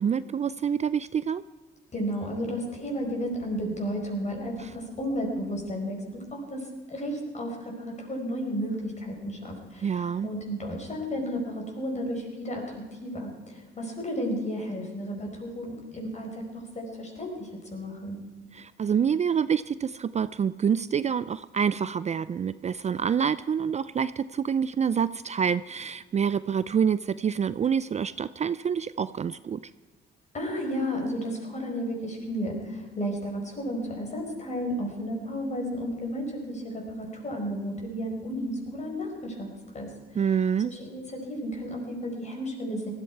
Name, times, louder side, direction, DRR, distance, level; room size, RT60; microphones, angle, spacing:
voice 1, 0.0-1.4 4.6-4.7 9.8-10.3 18.5-29.6 40.1-40.7, right 7 dB, 35° right, 15 dB, 0.4 m, -27 dB
voice 2, 1.9-18.2 30.3-39.5 39.7-39.9 40.6-42.9, equal, 35° left, 1 dB, 5.1 m, -33 dB
18.0 x 13.5 x 4.7 m, 1.4 s
cardioid pair, 90°, 20 cm